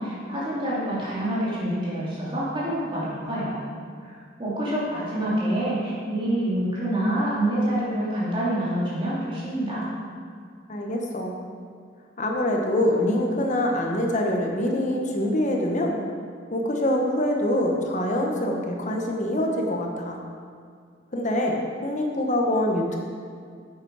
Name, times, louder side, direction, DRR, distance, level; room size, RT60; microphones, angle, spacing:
voice 1, 0.0-3.6 4.0-9.9, right 1 dB, 25° right, -8 dB, 2.8 m, -27 dB
voice 2, 10.7-11.3 12.2-16.0 16.5-20.2 21.1-23.0, left 1 dB, 40° left, 1 dB, 1.1 m, -25 dB
9.3 x 8.1 x 4.8 m, 2.1 s
head